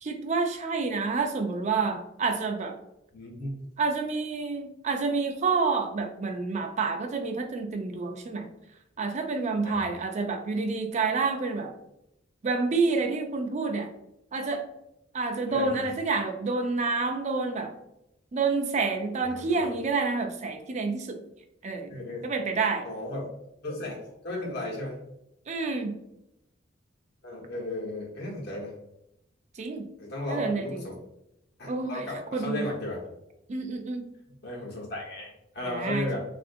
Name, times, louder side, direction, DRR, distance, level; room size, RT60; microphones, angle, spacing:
voice 1, 0.0-2.8 3.8-8.5 9.0-11.7 12.4-13.9 14.3-14.7 15.1-17.7 18.3-21.2 21.6-21.9 22.2-22.9 25.5-26.0 29.6-29.9 30.3-30.7 31.7-32.0 32.3-32.6 33.5-34.1 35.7-36.1, right 4 dB, 40° right, 4 dB, 0.4 m, -28 dB
voice 2, 3.1-3.5 9.6-9.8 15.5-15.8 19.2-19.8 21.9-22.2 22.8-23.3 23.6-25.0 27.2-28.8 30.0-31.0 31.6-33.0 34.4-36.2, left 1 dB, 60° left, -3 dB, 1.0 m, -35 dB
3.5 x 2.5 x 2.5 m, 0.82 s
head